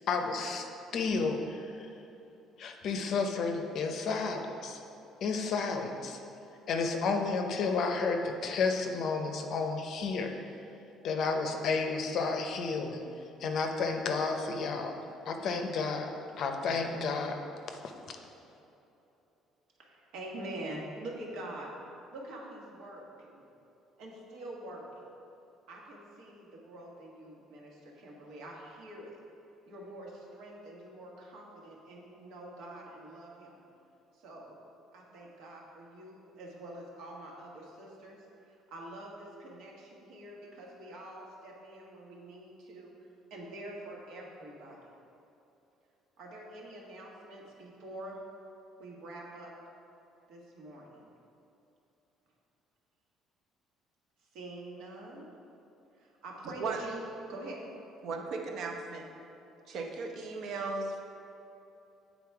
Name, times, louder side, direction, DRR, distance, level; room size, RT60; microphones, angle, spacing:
voice 1, 0.1-0.6 0.9-1.9 2.6-4.8 5.2-6.2 6.7-10.3 11.0-13.0 13.4-15.0 15.3-16.1 16.4-17.4 17.7-17.8, left 4 dB, 50° left, 4 dB, 0.6 m, -31 dB
voice 2, 19.8-21.7 22.1-23.5 24.0-25.0 25.7-29.2 29.7-33.6 34.1-34.6 34.9-44.9 46.2-48.2 48.8-49.5 50.3-51.1 54.2-55.3 55.9-57.0 57.3-57.6, right 1 dB, 75° right, -2 dB, 1.5 m, -45 dB
voice 3, 58.0-59.0 59.7-61.0, right 4 dB, 55° right, 2 dB, 0.8 m, -36 dB
8.7 x 4.0 x 4.7 m, 2.9 s
cardioid pair, 160°, 0 cm